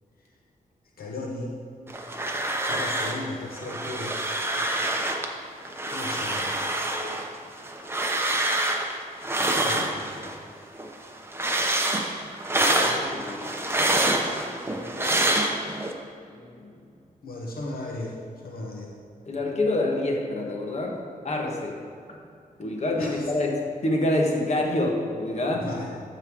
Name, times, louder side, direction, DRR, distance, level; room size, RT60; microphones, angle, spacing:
voice 1, 1.0-1.5 2.6-4.2 5.9-6.6 9.5-10.3 17.2-18.2 18.4-18.9 23.0-23.3 25.5-26.0, left 2 dB, 80° left, -1 dB, 1.1 m, -36 dB
sound 1, 1.9-3.3 3.5-5.3 5.7-10.4 10.7-15.9, right 1 dB, 15° right, 0.9 m, -26 dB
voice 2, 12.7-13.8 14.7-15.9 16.3-16.7 19.3-21.8 22.1-22.2 22.6-25.7, left 1 dB, 50° left, 0 dB, 1.5 m, -28 dB
14.0 x 5.7 x 3.7 m, 2.4 s
wide cardioid pair, 95°, 15 cm